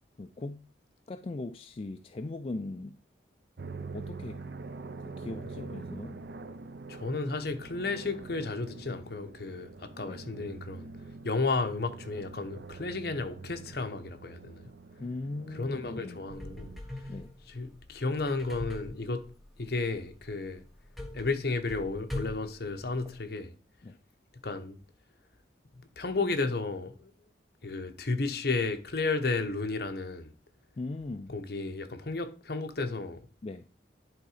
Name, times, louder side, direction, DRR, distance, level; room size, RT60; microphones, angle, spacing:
voice 1, 0.2-0.7 1.1-3.0 3.9-4.4 5.0-6.2 10.1-10.2 15.0-16.3 17.1-17.3 23.8-24.0 30.8-31.4 33.4-33.7, left 2 dB, 30° left, 0.3 m, -39 dB
sound 1, 3.6-16.8, right 4 dB, 60° right, 0.5 m, -45 dB
voice 2, 6.9-10.9 11.2-14.7 15.5-16.7 17.5-19.3 19.6-20.6 21.1-23.5 24.4-24.8 25.7-27.1 27.6-30.3 31.3-33.2, left 3 dB, 55° left, 0.9 m, -33 dB
sound 2, 16.3-23.2, left 1 dB, ahead, 1.1 m, -43 dB
11.0 x 3.8 x 4.9 m
head